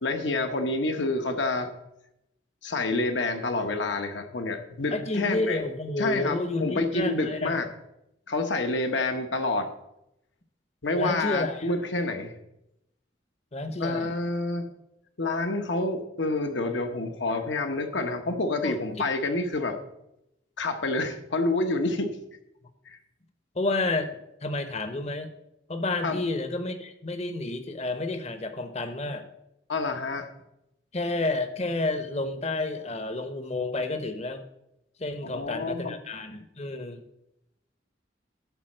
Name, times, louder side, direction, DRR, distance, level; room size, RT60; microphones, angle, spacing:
voice 1, 0.0-1.7 2.6-5.6 6.0-7.7 8.3-9.7 10.8-12.3 13.8-14.7 15.2-19.8 20.6-22.2 22.9-23.0 26.0-26.2 29.7-30.3 35.2-36.0, left 2 dB, 75° left, 6 dB, 1.2 m, -28 dB
voice 2, 4.9-7.6 10.9-11.7 13.5-14.1 18.6-18.8 23.5-24.1 24.4-25.3 25.7-29.3 30.9-34.4 35.0-37.0, left 2 dB, 35° left, 9 dB, 0.9 m, -30 dB
12.0 x 4.1 x 7.8 m, 0.86 s
head